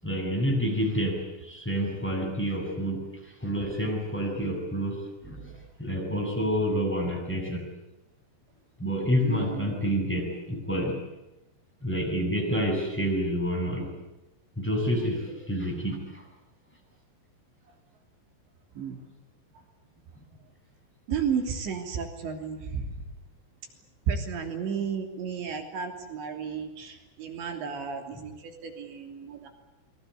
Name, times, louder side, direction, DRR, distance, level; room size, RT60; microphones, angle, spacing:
voice 1, 0.0-5.5 5.8-7.7 8.8-11.0 11.8-13.9 14.6-16.2 28.1-28.2, equal, ahead, 1 dB, 7.4 m, -28 dB
voice 2, 9.2-9.8 18.8-19.0 21.1-22.9 24.1-29.5, right 6 dB, 85° right, 4 dB, 5.4 m, -33 dB
28.0 x 22.5 x 8.3 m, 0.97 s
omnidirectional pair, 5.0 m